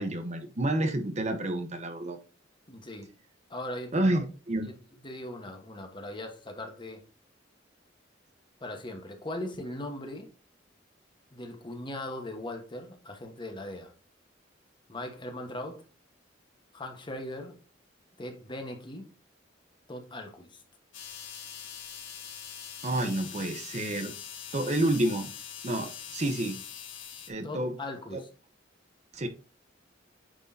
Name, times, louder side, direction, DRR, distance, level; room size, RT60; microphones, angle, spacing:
voice 1, 0.0-2.2 3.9-4.7 22.8-24.1 24.5-25.3 25.6-26.6 27.3-27.7 28.1-28.2 29.1-29.3, right 1 dB, 40° right, 0.9 m, -29 dB
voice 2, 2.7-3.1 3.5-4.1 4.6-4.8 5.0-7.0 8.6-10.3 11.3-13.9 14.9-15.8 16.7-17.6 18.2-19.1 19.9-20.6 27.4-28.3, left 1 dB, 25° left, 1.2 m, -39 dB
sound 1, 20.9-27.3, left 8 dB, 90° left, 1.5 m, -43 dB
9.0 x 4.6 x 2.7 m
head